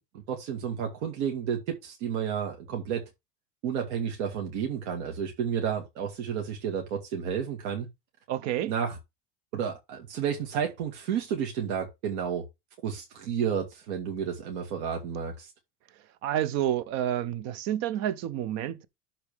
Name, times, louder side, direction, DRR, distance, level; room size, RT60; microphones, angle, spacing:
voice 1, 0.3-3.0 3.6-7.9 8.7-9.0 9.5-12.5 12.8-15.5, right 8 dB, 75° right, 2.3 m, -31 dB
voice 2, 8.3-8.7 16.2-18.8, right 11 dB, 50° right, 0.9 m, -29 dB
12.5 x 4.4 x 3.5 m
cardioid pair, 155°, 35 cm